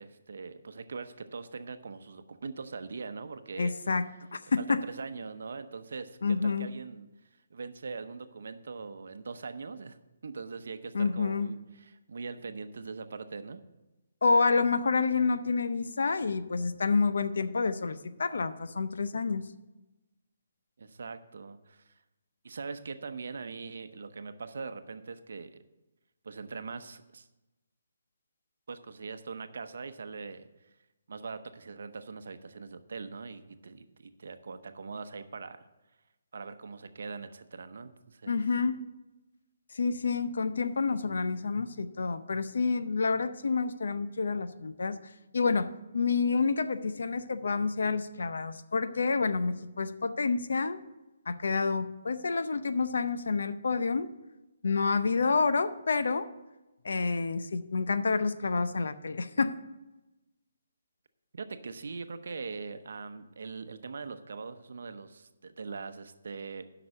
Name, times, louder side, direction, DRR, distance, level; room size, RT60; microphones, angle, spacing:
voice 1, 0.0-3.7 4.6-7.1 7.5-10.0 10.2-13.6 20.8-21.9 22.4-25.6 26.2-27.3 28.7-30.5 31.1-35.6 36.3-38.4 61.3-66.7, right 4 dB, 70° right, 10 dB, 0.7 m, -41 dB
voice 2, 3.6-4.1 4.3-4.9 6.2-6.7 10.9-11.5 14.2-19.5 38.3-38.8 39.7-45.0 45.3-50.8 51.3-54.1 54.6-56.3 56.8-59.6, left 4 dB, 75° left, 12 dB, 0.6 m, -28 dB
7.9 x 5.9 x 7.6 m, 1.0 s
hypercardioid pair, 165°, 0 cm